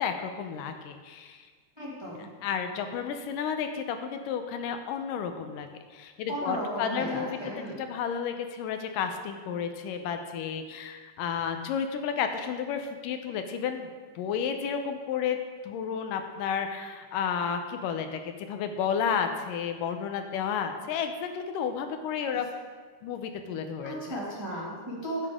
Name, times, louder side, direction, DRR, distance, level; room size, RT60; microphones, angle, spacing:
voice 1, 0.0-1.4 2.4-7.4 7.8-13.9 14.2-15.4 15.6-22.5 23.0-24.2, left 7 dB, 90° left, 7 dB, 2.4 m, -32 dB
voice 2, 1.8-2.3 6.3-7.8 23.8-25.3, equal, 10° right, -6 dB, 1.6 m, -35 dB
13.5 x 8.7 x 3.7 m, 1.5 s
omnidirectional pair, 3.7 m